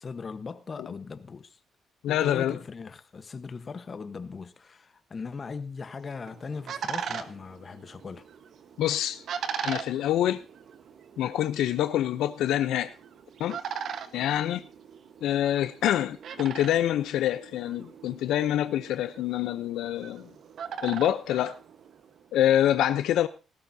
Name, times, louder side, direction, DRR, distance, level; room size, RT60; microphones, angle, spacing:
voice 1, 0.0-1.6 2.1-8.3, left 5 dB, 40° left, 1.1 m, -39 dB
voice 2, 2.0-2.6 8.8-9.2 9.6-10.4 11.2-12.9 13.4-13.6 14.1-14.6 15.2-20.3 20.8-21.6 22.3-23.3, left 12 dB, 85° left, 0.6 m, -26 dB
sound 1, 6.0-22.3, right 7 dB, 65° right, 1.2 m, -40 dB
17.5 x 14.0 x 2.8 m
cardioid pair, 90°, 0 cm